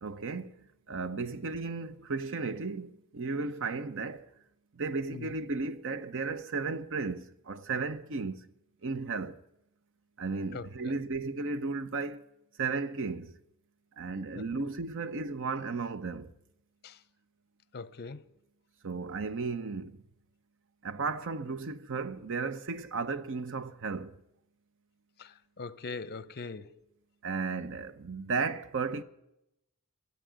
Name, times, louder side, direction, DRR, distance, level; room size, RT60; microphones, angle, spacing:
voice 1, 0.0-4.3 4.7-8.5 8.8-9.4 10.2-12.3 12.6-13.3 14.0-16.3 18.8-20.0 20.8-24.1 27.2-29.0, right 4 dB, 60° right, 0.8 m, -34 dB
voice 2, 10.5-10.9 14.3-14.4 16.8-17.0 17.7-18.2 25.2-26.7, left 4 dB, 45° left, 0.6 m, -41 dB
14.0 x 8.4 x 9.2 m
head